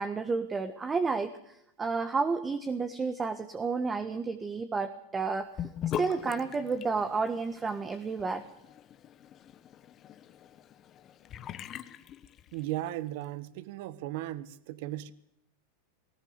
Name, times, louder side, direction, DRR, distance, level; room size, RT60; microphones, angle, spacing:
voice 1, 0.0-5.5 6.0-8.4, right 4 dB, 20° right, 1.6 m, -31 dB
Sink (filling or washing) / Bathtub (filling or washing), 5.6-12.9, left 10 dB, 35° left, 1.2 m, -41 dB
voice 2, 12.5-15.1, right 14 dB, 60° right, 1.2 m, -36 dB
19.5 x 18.0 x 8.2 m
hypercardioid pair, 105°, 0 cm